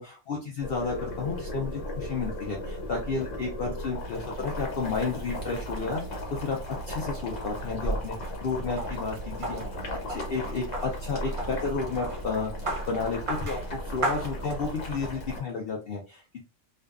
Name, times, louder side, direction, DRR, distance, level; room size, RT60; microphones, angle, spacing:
voice 1, 0.0-6.6 6.9-9.6 10.1-16.4, left 4 dB, 60° left, -1 dB, 0.7 m, -32 dB
Boiling, 0.6-15.4, equal, 80° left, 1.3 m, -36 dB
sound 1, 7.4-14.9, right 2 dB, 45° right, 0.4 m, -36 dB
2.6 x 2.3 x 2.3 m, 0.32 s
omnidirectional pair, 1.3 m